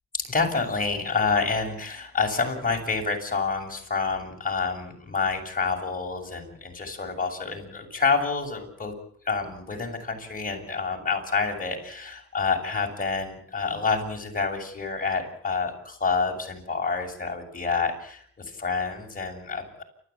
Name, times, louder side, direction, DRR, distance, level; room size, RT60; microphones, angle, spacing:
voice 1, 0.1-8.9 9.2-19.8, left 4 dB, 30° left, 2 dB, 7.5 m, -28 dB
29.0 x 14.5 x 8.6 m, 0.63 s
cardioid pair, 90°, 30 cm